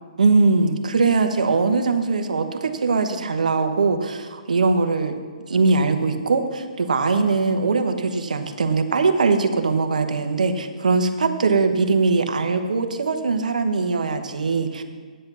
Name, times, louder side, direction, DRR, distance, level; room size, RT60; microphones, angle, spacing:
voice 1, 0.2-5.1 5.5-14.8, right 4 dB, 75° right, 7 dB, 1.1 m, -21 dB
9.8 x 7.9 x 5.6 m, 1.5 s
hypercardioid pair, 135°, 4 cm